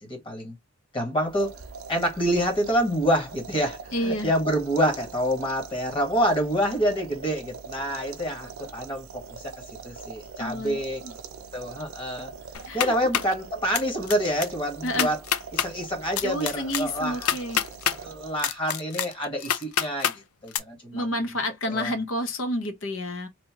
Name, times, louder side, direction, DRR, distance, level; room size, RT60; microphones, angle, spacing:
voice 1, 0.0-0.5 0.9-1.6 1.9-9.5 9.8-11.0 11.5-12.3 12.7-15.2 15.5-17.3 17.9-21.1 21.7-21.9, equal, 25° left, 1.3 m, -27 dB
sound 1, 1.2-18.6, right 5 dB, 75° right, 0.6 m, -43 dB
voice 2, 3.9-4.3 10.4-11.1 12.7-12.9 14.8-15.1 16.2-17.6 20.9-23.3, left 1 dB, 65° left, 0.8 m, -30 dB
sound 2, 12.5-13.3 13.7-14.1 14.4-14.5 14.9-15.7 16.2-18.0 18.4-20.2 20.5-20.6, left 9 dB, 90° left, 0.4 m, -26 dB
3.1 x 2.7 x 2.9 m
head